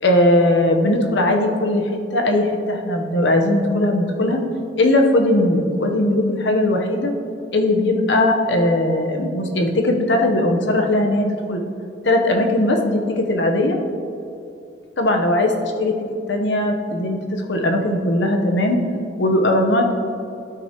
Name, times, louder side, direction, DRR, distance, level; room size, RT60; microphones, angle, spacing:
voice 1, 0.0-4.4 4.8-7.1 7.5-11.6 12.0-13.8 15.0-16.0 16.3-18.8 19.2-19.9, left 1 dB, 80° left, 3 dB, 1.0 m, -19 dB
12.5 x 6.0 x 3.0 m, 2.6 s
head